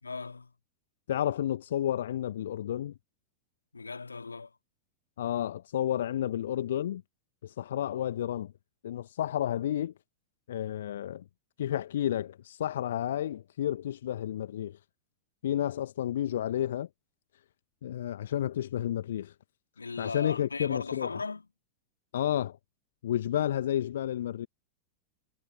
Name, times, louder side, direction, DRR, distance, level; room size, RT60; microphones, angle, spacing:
voice 1, 0.0-0.5 3.7-4.6 19.8-21.5, left 4 dB, 80° left, 2.9 m, -37 dB
voice 2, 1.1-2.9 5.2-7.0 7.4-8.5 8.8-9.9 10.5-11.2 11.6-14.8 15.4-16.9 17.8-19.3 20.0-21.1 22.1-22.6 23.0-24.5, left 11 dB, 60° left, 1.3 m, -31 dB
figure-of-eight pair, 90°, 0 cm